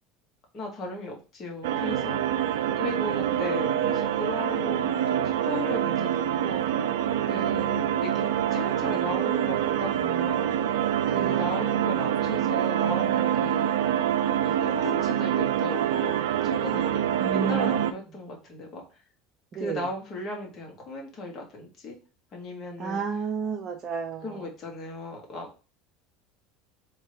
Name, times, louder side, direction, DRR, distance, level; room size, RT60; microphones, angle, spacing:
voice 1, 0.5-2.2 2.8-6.6 7.3-10.8 11.1-13.7 14.4-16.1 16.4-17.0 17.3-18.8 19.5-22.0 22.3-23.0 24.2-25.5, left 2 dB, 40° left, 0 dB, 2.0 m, -36 dB
sound 1, 1.6-17.9, right 10 dB, 75° right, 0.4 m, -26 dB
voice 2, 17.2-17.8 19.5-19.9 22.8-24.5, right 6 dB, 40° right, 0 dB, 0.9 m, -31 dB
3.6 x 3.2 x 4.5 m, 0.33 s
hypercardioid pair, 80°, 0 cm